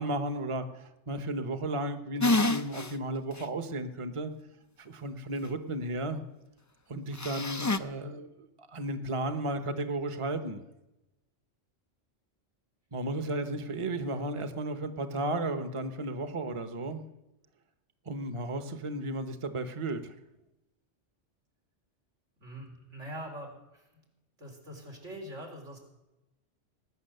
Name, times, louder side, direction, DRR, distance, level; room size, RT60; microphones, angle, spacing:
voice 1, 0.0-4.3 4.8-6.2 6.9-10.6 12.9-17.0 18.1-20.1, right 2 dB, 30° right, 8 dB, 1.0 m, -34 dB
sound 1, 2.2-2.9 3.4-3.5 7.2-7.8, left 2 dB, 30° left, 0.3 m, -27 dB
voice 2, 22.4-23.8 24.4-25.8, equal, 90° right, 1 dB, 4.2 m, -43 dB
19.5 x 9.8 x 6.7 m, 0.96 s
omnidirectional pair, 1.2 m